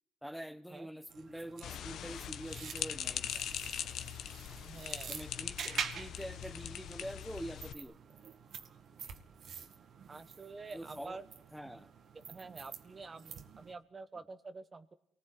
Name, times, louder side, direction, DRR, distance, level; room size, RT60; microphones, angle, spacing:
voice 1, 0.2-3.4 5.1-7.9 10.7-11.2 11.5-11.9, equal, ahead, 12 dB, 1.4 m, -45 dB
sound 1, 1.1-13.7, right 7 dB, 65° right, 2.1 m, -47 dB
sound 2, 1.6-7.7, left 9 dB, 75° left, 1.5 m, -41 dB
voice 2, 4.6-5.1 10.1-11.3 12.3-15.0, right 3 dB, 30° right, 11 dB, 1.2 m, -48 dB
28.0 x 20.0 x 9.3 m, 0.69 s
cardioid pair, 90°, 0 cm